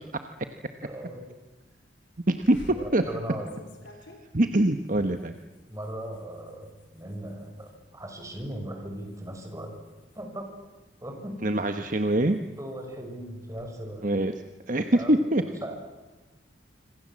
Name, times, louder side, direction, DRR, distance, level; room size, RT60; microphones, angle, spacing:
voice 1, 0.8-1.2 2.7-3.5 5.7-9.7 10.1-10.5 11.0-11.4 12.6-14.1 14.9-15.2 15.5-15.8, right 1 dB, 15° right, 3 dB, 6.3 m, -38 dB
voice 2, 2.3-2.6 2.9-3.0 4.3-5.3 11.4-12.4 14.0-14.3 14.7-15.4, right 1 dB, 45° right, 7 dB, 1.2 m, -23 dB
sound 1, 2.4-7.8 8.2-8.6 8.9-11.0 11.5-13.7, left 1 dB, 85° left, 5.1 m, -51 dB
26.5 x 26.0 x 7.6 m, 1.2 s
head